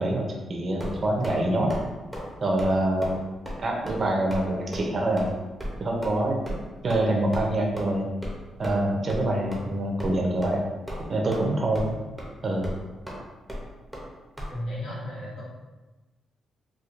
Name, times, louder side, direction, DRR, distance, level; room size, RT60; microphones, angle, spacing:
voice 1, 0.0-1.7 2.4-3.2 3.6-5.3 5.8-6.4 6.8-8.1 8.6-10.6 11.1-11.9 12.4-12.7, right 1 dB, 40° right, 0 dB, 0.6 m, -25 dB
sound 1, 0.8-1.4 1.7-1.9 2.1-2.3 2.6-2.7 3.0-3.2 3.5-3.6 3.9-4.0 4.3-4.5 4.7-4.8 5.2-5.3 5.6-5.7 6.0-6.2 6.5-6.6 6.9-7.0 7.3-7.4 7.8-7.9 8.2-8.4 8.6-8.8 9.1-9.2 9.5-9.6 10.0-10.1 10.4-10.6 10.9-11.4 11.7-11.9 12.2-12.3 12.6-12.8 13.1-13.2 13.5-13.6 13.9-14.1 14.4-14.5, equal, ahead, 0.6 m, -34 dB
voice 2, 14.5-15.4, left 1 dB, 80° left, -6 dB, 1.3 m, -34 dB
4.3 x 2.2 x 2.5 m, 1.1 s
cardioid pair, 130°, 0 cm